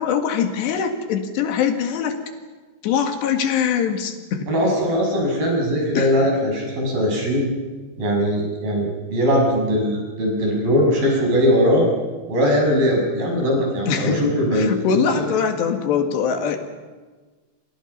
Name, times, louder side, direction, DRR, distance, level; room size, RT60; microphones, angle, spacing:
voice 1, 0.0-2.2 2.8-4.5 6.0-6.1 13.9-14.2 14.6-16.6, left 7 dB, 80° left, 5 dB, 4.2 m, -22 dB
voice 2, 4.5-7.5 8.0-11.9 12.3-15.3, equal, 55° right, 0 dB, 8.3 m, -20 dB
27.5 x 27.0 x 5.7 m, 1.4 s
omnidirectional pair, 4.9 m